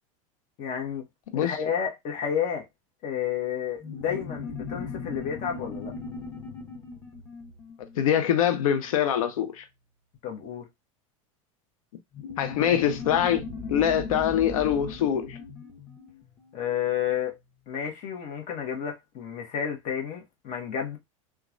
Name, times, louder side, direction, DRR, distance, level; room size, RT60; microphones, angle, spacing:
voice 1, 0.6-1.0 1.4-2.7 3.0-5.9 10.2-10.6 16.5-17.4 17.7-21.0, left 8 dB, 45° left, 1.1 m, -31 dB
sound 1, 3.8-8.8 12.1-17.0, left 4 dB, 15° left, 1.1 m, -38 dB
voice 2, 8.0-9.7 12.4-15.4, left 9 dB, 90° left, 0.5 m, -24 dB
2.9 x 2.3 x 2.5 m
supercardioid pair, 115°, 17 cm